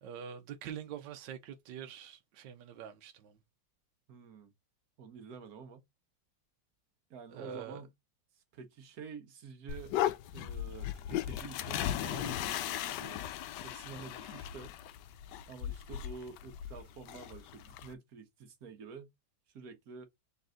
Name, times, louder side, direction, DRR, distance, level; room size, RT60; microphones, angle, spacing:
voice 1, 0.0-3.3 7.3-7.8, right 8 dB, 75° right, 1.3 m, -45 dB
voice 2, 4.1-4.5 5.0-5.8 7.1-7.9 8.5-10.0 10.3-13.2 13.6-14.7 15.5-19.1 19.5-20.1, right 5 dB, 55° right, 1.5 m, -49 dB
sound 1, 9.7-17.9, left 11 dB, 75° left, 1.1 m, -37 dB
4.1 x 3.4 x 3.7 m
omnidirectional pair, 2.0 m